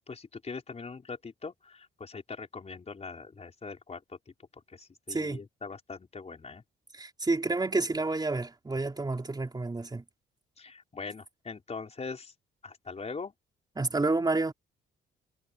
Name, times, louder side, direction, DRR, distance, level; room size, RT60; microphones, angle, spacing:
voice 1, 0.0-4.2 4.7-6.6 10.6-12.3 12.6-13.3, left 4 dB, 35° left, 4.4 m, -42 dB
voice 2, 5.1-5.4 6.9-10.0 13.8-14.5, right 3 dB, 20° right, 3.9 m, -29 dB
cardioid pair, 90°, 20 cm